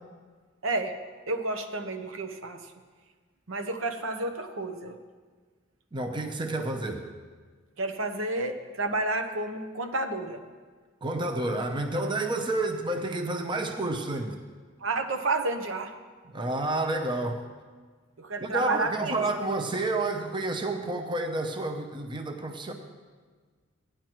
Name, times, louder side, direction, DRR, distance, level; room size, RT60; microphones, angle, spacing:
voice 1, 0.6-1.0 1.3-2.7 3.5-5.0 7.8-10.4 14.8-15.9 18.2-19.3, right 2 dB, 75° right, 6 dB, 0.9 m, -30 dB
voice 2, 5.9-7.1 11.0-14.4 16.3-17.4 18.4-22.7, right 2 dB, 25° right, 4 dB, 0.7 m, -30 dB
16.5 x 9.9 x 3.0 m, 1.5 s
head